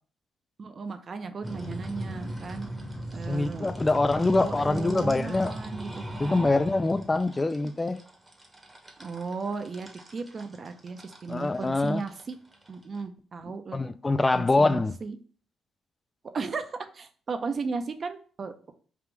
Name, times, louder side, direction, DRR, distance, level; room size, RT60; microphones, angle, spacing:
voice 1, 0.6-2.7 3.1-3.7 4.1-6.5 9.0-12.4 12.7-13.8 14.3-15.2 16.3-18.7, right 4 dB, 45° right, 0.5 m, -35 dB
sound 1, 1.4-13.0, right 1 dB, 15° right, 0.8 m, -39 dB
voice 2, 3.3-5.6 6.2-8.0 11.3-12.0 13.7-14.9, left 2 dB, 20° left, 0.3 m, -24 dB
3.5 x 2.5 x 4.5 m
cardioid pair, 90°, 0 cm